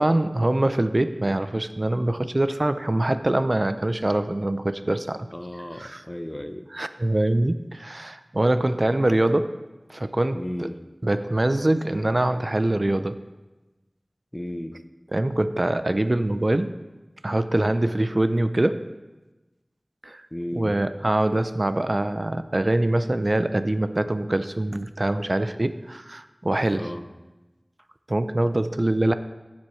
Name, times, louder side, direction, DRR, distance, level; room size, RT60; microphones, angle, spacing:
voice 1, 0.0-5.3 5.8-6.0 6.7-9.6 9.9-10.7 11.0-13.2 15.1-16.8 17.2-18.9 20.0-20.2 20.5-26.9 28.1-29.2, right 1 dB, 50° right, 11 dB, 0.5 m, -24 dB
voice 2, 5.3-6.7 10.3-10.8 14.3-14.8 20.3-20.8 26.7-27.1, left 1 dB, 25° left, 8 dB, 0.7 m, -34 dB
14.0 x 7.2 x 3.1 m, 1.1 s
wide cardioid pair, 45°, 0 cm